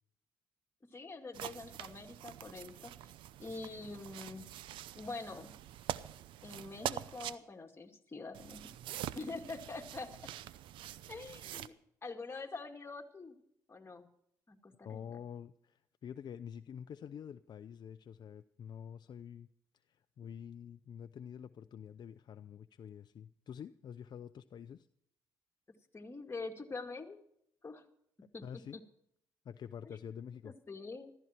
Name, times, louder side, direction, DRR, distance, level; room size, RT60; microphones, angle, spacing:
voice 1, 0.9-3.1 3.4-4.5 4.9-5.5 6.4-8.7 9.2-10.3 11.1-11.7 12.0-13.4 13.7-14.1 14.5-15.2 25.9-27.2 27.6-27.8 28.3-28.8 29.8-30.0 30.4-31.1, left 3 dB, 30° left, 3 dB, 2.3 m, -45 dB
sound 1, 1.3-7.4 8.3-11.7, right 12 dB, 80° right, 0.6 m, -45 dB
voice 2, 14.8-19.5 19.9-24.9 28.4-28.8 29.4-30.6, left 8 dB, 60° left, 10 dB, 0.6 m, -47 dB
15.0 x 13.5 x 4.4 m, 0.73 s
supercardioid pair, 60°, 8 cm